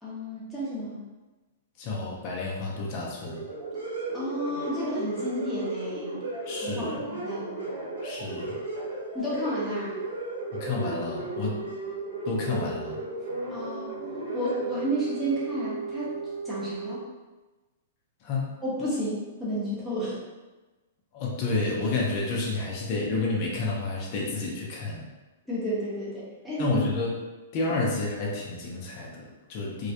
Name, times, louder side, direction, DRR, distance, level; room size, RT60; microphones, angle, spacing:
voice 1, 0.0-1.0 4.1-6.2 6.6-7.6 9.1-10.0 13.5-13.9 14.3-16.2 16.4-17.0 18.6-20.2 25.5-26.7, equal, ahead, -10 dB, 0.7 m, -32 dB
voice 2, 1.8-3.4 6.4-7.0 8.0-8.6 10.5-11.6 12.2-13.0 18.2-18.5 21.1-25.1 26.6-27.2 27.5-29.9, left 3 dB, 40° left, -3 dB, 0.5 m, -30 dB
sound 1, 3.2-17.0, right 3 dB, 85° right, 1.0 m, -34 dB
2.2 x 2.1 x 2.7 m, 1.2 s
hypercardioid pair, 140°, 0 cm